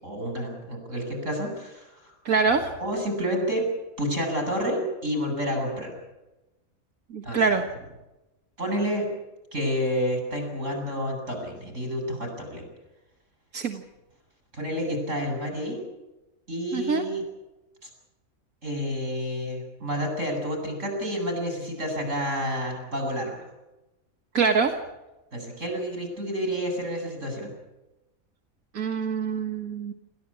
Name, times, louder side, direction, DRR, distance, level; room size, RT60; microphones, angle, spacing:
voice 1, 0.0-2.1 2.8-3.7 4.0-5.9 7.2-7.4 8.6-9.1 9.5-12.7 14.5-15.9 16.5-17.2 17.8-17.9 18.6-23.4 25.3-27.5, equal, 60° right, 4 dB, 7.6 m, -29 dB
voice 2, 2.3-2.7 7.1-7.6 13.5-13.8 16.7-17.0 24.3-24.7 28.7-29.9, right 5 dB, 85° right, 3 dB, 1.9 m, -24 dB
28.0 x 14.5 x 8.6 m, 1.0 s
omnidirectional pair, 1.4 m